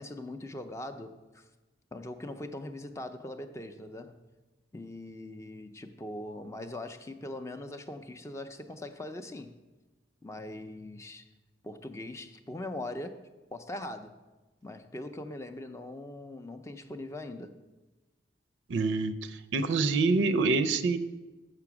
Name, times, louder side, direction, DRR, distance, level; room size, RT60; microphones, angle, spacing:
voice 1, 0.0-1.4 1.9-4.2 4.7-9.5 10.2-11.2 11.6-13.2 13.5-14.1 14.6-17.5, left 1 dB, 15° left, 8 dB, 0.4 m, -41 dB
voice 2, 18.7-21.0, right 3 dB, 75° right, 12 dB, 0.4 m, -26 dB
6.7 x 5.9 x 5.9 m, 1.2 s
head